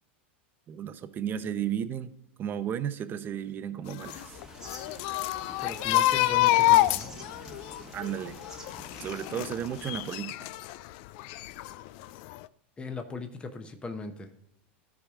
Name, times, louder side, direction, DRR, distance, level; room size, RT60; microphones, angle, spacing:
voice 1, 0.7-2.1 2.4-4.4 7.9-8.4 9.0-10.3, right 9 dB, 30° right, 12 dB, 0.8 m, -33 dB
sound 1, 3.9-10.8 11.2-12.1 12.3-12.5, left 15 dB, 55° left, 0.4 m, -27 dB
sound 2, 4.1-10.0, right 2 dB, 5° right, 1.1 m, -48 dB
voice 2, 5.4-7.1 12.8-14.4, left 4 dB, 15° left, 6 dB, 1.0 m, -39 dB
13.5 x 4.9 x 3.7 m, 0.77 s
hypercardioid pair, 110°, 6 cm